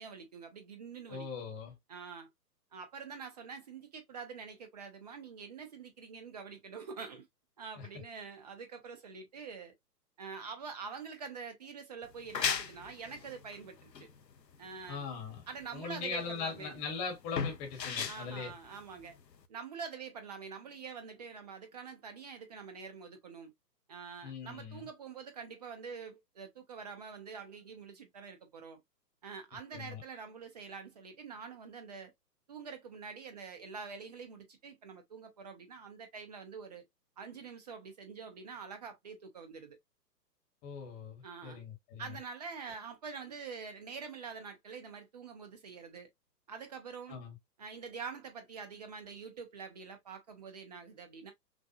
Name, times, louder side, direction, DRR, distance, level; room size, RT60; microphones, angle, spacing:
voice 1, 0.0-1.3 1.9-2.3 2.7-7.3 7.6-9.7 10.2-14.1 14.6-15.1 15.5-16.8 18.1-19.2 19.5-23.5 23.9-28.8 29.2-32.1 32.5-36.8 37.2-39.8 41.2-41.6 42.0-46.1 46.5-47.2 47.6-51.3, right 5 dB, 25° right, 0.6 m, -46 dB
voice 2, 1.1-1.7 7.8-7.9 14.9-15.4 15.7-18.5 24.2-24.9 29.7-30.0 40.6-42.2 47.1-47.4, left 5 dB, 15° left, 1.1 m, -40 dB
sound 1, 12.0-19.5, left 6 dB, 85° left, 0.7 m, -38 dB
5.9 x 2.2 x 2.4 m
figure-of-eight pair, 130°, 49 cm